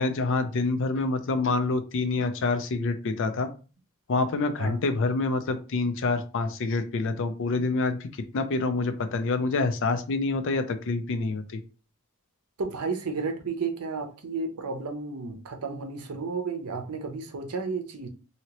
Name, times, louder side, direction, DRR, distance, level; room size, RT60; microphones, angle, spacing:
voice 1, 0.0-3.5 4.1-8.1 8.3-11.6, left 3 dB, 55° left, 0.4 m, -27 dB
voice 2, 12.6-18.1, right 4 dB, 85° right, 0.6 m, -32 dB
2.8 x 2.8 x 2.9 m
head